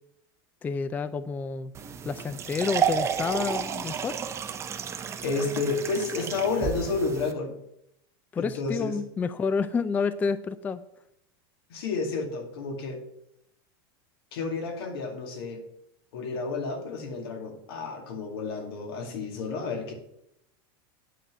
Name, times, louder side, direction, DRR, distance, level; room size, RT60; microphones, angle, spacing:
voice 1, 0.6-1.7 2.0-4.2 8.3-10.8, left 5 dB, 15° left, 15 dB, 0.3 m, -29 dB
sound 1, 1.7-7.3, right 8 dB, 20° right, 0.7 m, -31 dB
voice 2, 5.2-7.5 8.4-9.0 11.7-13.0 14.3-15.6 16.1-19.9, left 4 dB, 85° left, 3 dB, 2.2 m, -31 dB
9.3 x 5.8 x 6.2 m, 0.79 s
supercardioid pair, 145°, 12 cm